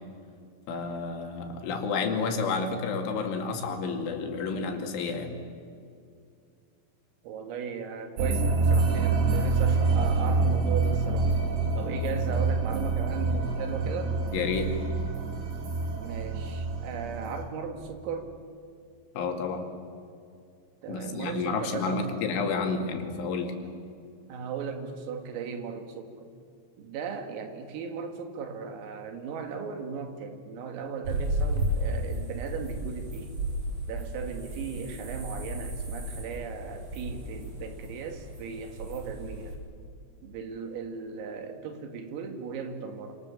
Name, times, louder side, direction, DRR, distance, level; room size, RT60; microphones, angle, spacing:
voice 1, 0.7-5.4 14.3-14.8 19.2-19.7 20.9-23.6, left 4 dB, 70° left, 4 dB, 4.5 m, -30 dB
voice 2, 7.2-11.3 11.8-14.2 15.9-18.4 20.8-22.2 24.3-26.3 26.8-33.3 33.9-39.6 40.2-43.2, right 6 dB, 85° right, 5 dB, 4.9 m, -37 dB
sound 1, 8.2-17.4, right 4 dB, 65° right, 4.7 m, -26 dB
sound 2, 31.0-39.5, right 1 dB, 40° right, 5.8 m, -33 dB
27.5 x 26.5 x 7.2 m, 2.3 s
omnidirectional pair, 5.9 m